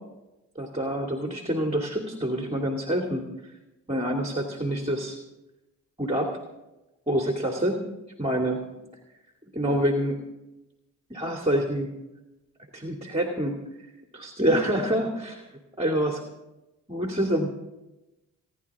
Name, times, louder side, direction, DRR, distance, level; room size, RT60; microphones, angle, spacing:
voice 1, 0.6-3.3 3.9-5.2 6.0-6.4 7.1-7.8 8.2-8.6 9.5-10.2 11.1-11.9 12.7-13.6 14.1-15.5 15.8-16.2 16.9-17.5, right 1 dB, 15° right, 2 dB, 2.5 m, -26 dB
27.5 x 11.0 x 3.7 m, 1.0 s
supercardioid pair, 50°, 42 cm